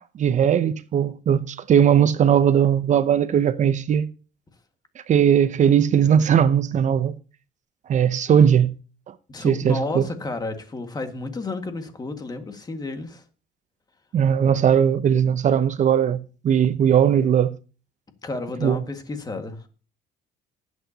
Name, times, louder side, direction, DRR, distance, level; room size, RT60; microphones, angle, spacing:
voice 1, 0.1-4.1 5.1-7.1 7.9-8.7 9.4-10.1 14.1-17.5 18.6-18.8, right 8 dB, 45° right, 0.7 m, -19 dB
voice 2, 9.3-13.2 18.2-19.6, left 3 dB, 25° left, 1.8 m, -31 dB
19.5 x 8.1 x 2.9 m
cardioid pair, 110°, 17 cm